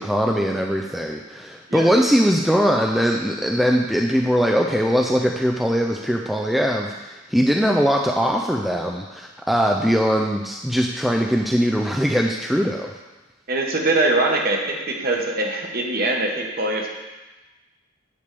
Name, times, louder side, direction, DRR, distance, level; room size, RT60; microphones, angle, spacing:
voice 1, 0.0-12.9, equal, ahead, 1 dB, 0.3 m, -21 dB
voice 2, 13.5-16.9, right 2 dB, 45° right, 1 dB, 1.1 m, -22 dB
9.6 x 3.5 x 6.7 m, 1.2 s
head